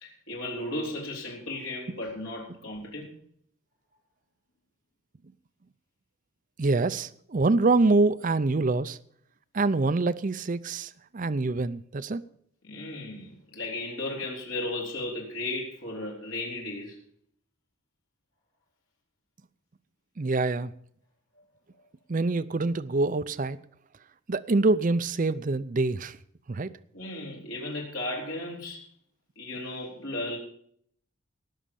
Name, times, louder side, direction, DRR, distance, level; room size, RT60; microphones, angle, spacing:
voice 1, 0.0-3.1 12.6-17.0 26.9-28.8 29.4-30.4, left 2 dB, 75° left, 3.8 m, -35 dB
voice 2, 6.6-9.0 9.5-12.2 20.2-20.7 22.1-23.6 24.3-26.2 26.5-26.7, right 3 dB, 35° right, 0.5 m, -25 dB
18.5 x 6.5 x 6.9 m
head